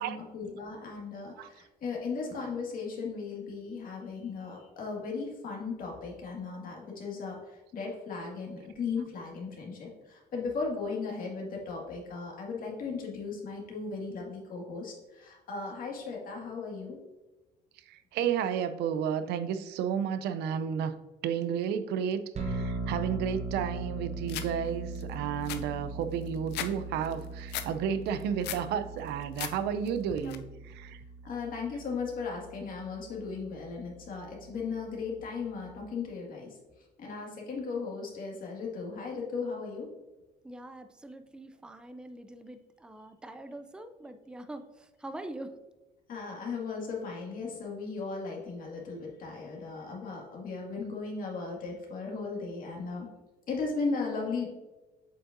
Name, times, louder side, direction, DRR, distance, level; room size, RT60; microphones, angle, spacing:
voice 1, 0.0-17.0 31.2-36.5 37.0-39.9 46.1-53.1 53.5-54.5, left 4 dB, 55° left, -1 dB, 2.0 m, -36 dB
voice 2, 17.9-20.9 21.2-31.0, right 8 dB, 80° right, 11 dB, 0.5 m, -32 dB
sound 1, 22.3-35.8, right 3 dB, 40° right, 1.0 m, -40 dB
sound 2, 24.3-24.5 25.0-25.1 25.3-26.7 27.0-27.7 28.1-28.7 29.1-29.5 29.9-30.4, left 11 dB, 80° left, 0.5 m, -37 dB
voice 3, 40.4-45.6, right 1 dB, 5° right, 9 dB, 0.4 m, -44 dB
7.7 x 5.2 x 2.6 m, 1.1 s
cardioid pair, 110°, 17 cm